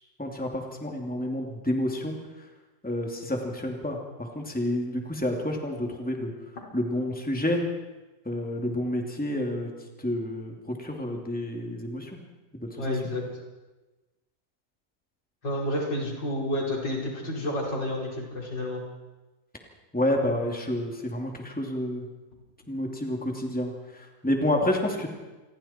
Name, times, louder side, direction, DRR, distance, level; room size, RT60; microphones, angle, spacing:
voice 1, 0.2-2.2 2.8-6.3 6.7-7.6 8.2-9.7 10.0-12.1 12.5-12.7 19.9-22.0 22.7-25.1, left 1 dB, 5° left, 1 dB, 2.7 m, -29 dB
voice 2, 12.8-13.2 15.4-18.8, left 1 dB, 85° left, -2 dB, 5.4 m, -30 dB
28.0 x 21.5 x 4.5 m, 1.1 s
omnidirectional pair, 1.9 m